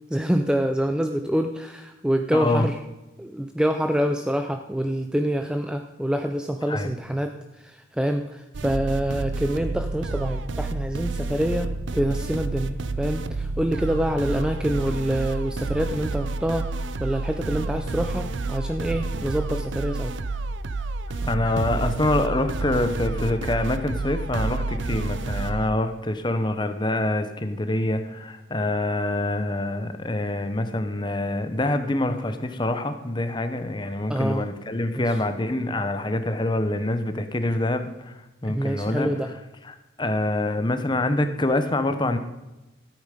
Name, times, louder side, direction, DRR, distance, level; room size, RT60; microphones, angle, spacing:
voice 1, 0.1-2.8 3.2-20.1 34.1-34.5 34.9-35.2 38.5-39.3, equal, 5° right, 6 dB, 0.4 m, -26 dB
voice 2, 2.3-2.7 6.7-6.9 21.3-39.1 39.6-42.2, left 1 dB, 20° left, 9 dB, 0.8 m, -26 dB
sound 1, 8.5-25.7, right 3 dB, 65° right, 0.5 m, -29 dB
13.5 x 8.9 x 5.1 m, 1.0 s
head